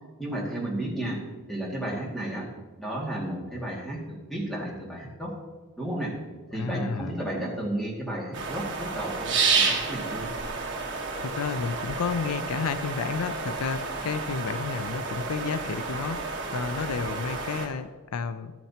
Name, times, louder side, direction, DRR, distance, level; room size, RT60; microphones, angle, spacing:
voice 1, 0.2-1.2 1.5-2.5 2.8-5.3 5.8-6.1 6.5-10.3, right 1 dB, ahead, -4 dB, 2.1 m, -33 dB
voice 2, 6.5-7.1 11.2-16.2 16.5-18.5, left 5 dB, 80° left, 12 dB, 0.4 m, -31 dB
sound 1, 8.3-17.7, right 4 dB, 55° right, 1.3 m, -30 dB
13.0 x 8.9 x 2.9 m, 1.3 s
head